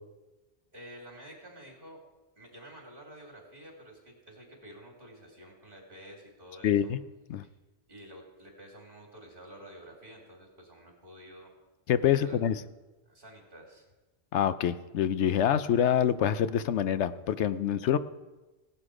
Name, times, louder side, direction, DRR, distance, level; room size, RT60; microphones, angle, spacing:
voice 1, 0.7-2.0 2.4-6.9 7.4-7.5 7.9-11.5 12.1-12.4 13.0-13.9, right 1 dB, 50° right, -1 dB, 3.2 m, -50 dB
voice 2, 6.6-7.0 7.3-7.4 11.9-12.6 14.3-18.0, left 9 dB, 80° left, 13 dB, 0.9 m, -26 dB
17.0 x 11.0 x 4.9 m, 1.1 s
omnidirectional pair, 1.2 m